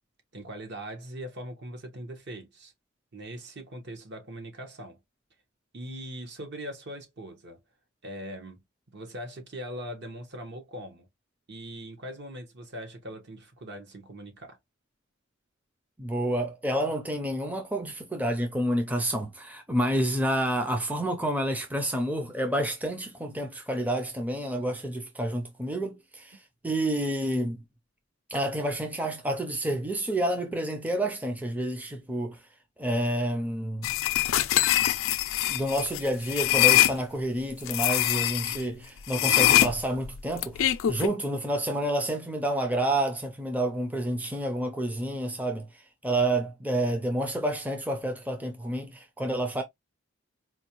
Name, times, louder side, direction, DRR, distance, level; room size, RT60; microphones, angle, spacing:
voice 1, 0.3-2.7 3.1-5.0 5.7-7.6 8.0-8.6 8.9-11.1 11.5-14.6, equal, 60° right, 1.2 m, -41 dB
voice 2, 16.0-27.6 28.3-32.4 32.8-33.9 35.5-49.6, right 1 dB, 10° right, 0.5 m, -29 dB
sound 1, 33.8-36.9 37.7-38.6 39.1-41.1, left 13 dB, 80° left, 0.4 m, -23 dB
4.3 x 2.3 x 2.9 m
head